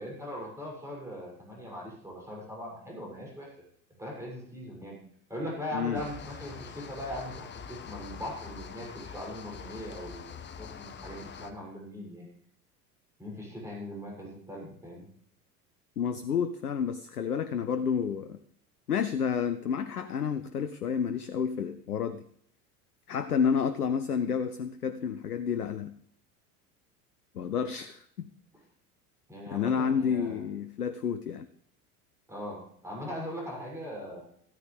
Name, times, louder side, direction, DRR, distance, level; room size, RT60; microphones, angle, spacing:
voice 1, 0.0-3.5 4.0-5.0 5.3-12.3 13.2-15.0 29.3-30.4 32.3-34.2, equal, 5° right, -3 dB, 6.9 m, -40 dB
sound 1, 5.9-11.5, left 6 dB, 25° left, 1.1 m, -44 dB
voice 2, 16.0-18.4 18.9-22.2 23.1-25.9 27.3-28.3 29.5-31.5, left 7 dB, 80° left, 11 dB, 0.8 m, -30 dB
14.5 x 13.5 x 3.4 m, 0.67 s
figure-of-eight pair, 75°, 45 cm